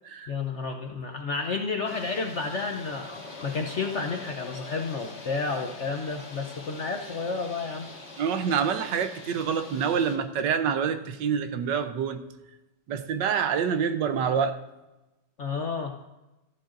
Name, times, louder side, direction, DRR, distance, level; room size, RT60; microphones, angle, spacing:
voice 1, 0.3-3.1 3.4-7.9 15.4-16.0, left 4 dB, 55° left, 3 dB, 0.8 m, -31 dB
sound 1, 1.8-10.1, left 3 dB, 35° left, 2.0 m, -43 dB
voice 2, 8.2-12.2 12.9-14.6, right 7 dB, 75° right, 9 dB, 1.3 m, -27 dB
13.5 x 11.5 x 2.5 m, 1.0 s
omnidirectional pair, 2.0 m